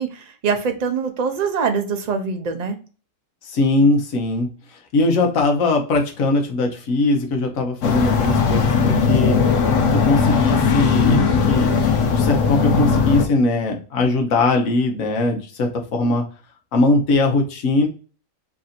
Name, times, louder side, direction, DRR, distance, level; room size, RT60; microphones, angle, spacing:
voice 1, 0.0-2.8, right 5 dB, 50° right, 6 dB, 0.5 m, -23 dB
voice 2, 3.4-9.7 9.9-11.7 12.0-16.3 16.7-17.9, left 2 dB, 90° left, 2 dB, 1.3 m, -20 dB
sound 1, 7.8-13.3, left 5 dB, 70° left, 1.1 m, -18 dB
3.3 x 2.5 x 4.1 m, 0.37 s
omnidirectional pair, 1.4 m